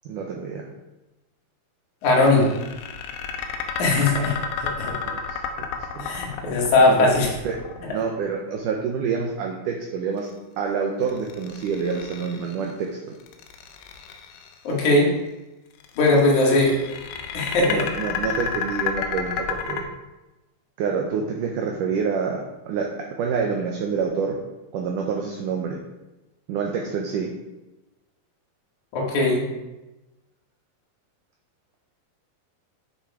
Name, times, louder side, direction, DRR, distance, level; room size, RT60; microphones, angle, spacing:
voice 1, 0.1-0.7 5.0-5.7 6.0-6.1 6.8-7.0 7.4-7.6 7.9-10.3 10.6-13.0 17.7-19.9 20.8-24.4 24.7-25.8 26.5-27.3, right 5 dB, 75° right, 1 dB, 2.0 m, -27 dB
voice 2, 2.0-2.5 3.8-4.9 6.0-7.3 14.6-15.1 16.0-16.8 17.3-17.8 28.9-29.4, left 2 dB, 55° left, -3 dB, 3.2 m, -19 dB
sound 1, 2.1-8.3 11.1-12.7 13.2-14.6 15.8-19.8, left 6 dB, 85° left, 2.9 m, -31 dB
8.4 x 6.6 x 4.9 m, 1.0 s
omnidirectional pair, 4.6 m